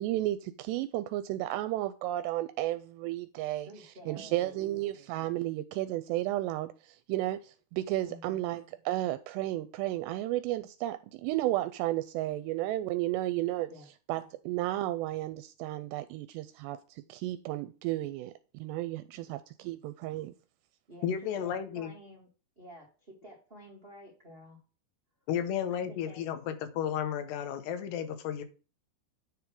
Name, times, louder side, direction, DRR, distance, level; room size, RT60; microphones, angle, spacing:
voice 1, 0.0-3.7 4.1-13.7 14.1-20.3, right 15 dB, 85° right, 2.7 m, -33 dB
voice 2, 3.6-4.8 8.0-8.4 13.7-13.9 19.1-19.3 20.9-22.3 22.5-24.6 25.7-26.2, equal, 50° right, 0.6 m, -51 dB
voice 3, 21.0-21.9 25.3-28.4, left 9 dB, 80° left, 3.0 m, -33 dB
9.8 x 3.8 x 5.8 m
omnidirectional pair, 4.9 m